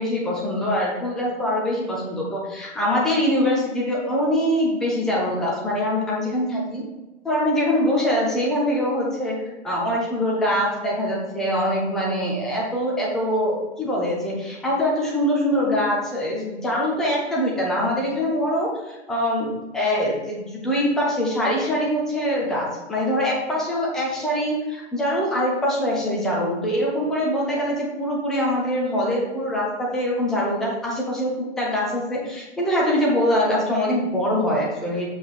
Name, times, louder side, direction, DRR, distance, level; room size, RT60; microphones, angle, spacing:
voice 1, 0.0-6.8 7.2-35.1, equal, ahead, -3 dB, 0.3 m, -23 dB
6.9 x 5.9 x 3.4 m, 1.1 s
figure-of-eight pair, 110°, 36 cm